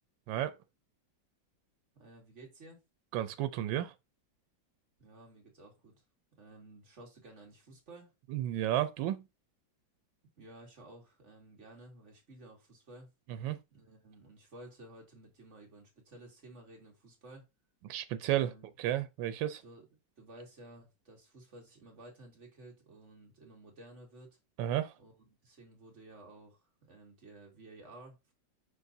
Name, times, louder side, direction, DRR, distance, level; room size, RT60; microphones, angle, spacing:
voice 1, 1.9-2.8 5.0-6.0 6.4-8.1 10.4-13.1 13.7-17.5 18.3-18.7 19.6-19.9 20.2-24.4 25.0-28.3, right 2 dB, 40° right, 2.3 m, -54 dB
voice 2, 3.1-3.9 8.3-9.2 13.4-13.6 17.8-18.5 18.8-19.6 24.6-24.9, right 12 dB, 90° right, 1.4 m, -32 dB
8.1 x 5.3 x 2.7 m
omnidirectional pair, 2.0 m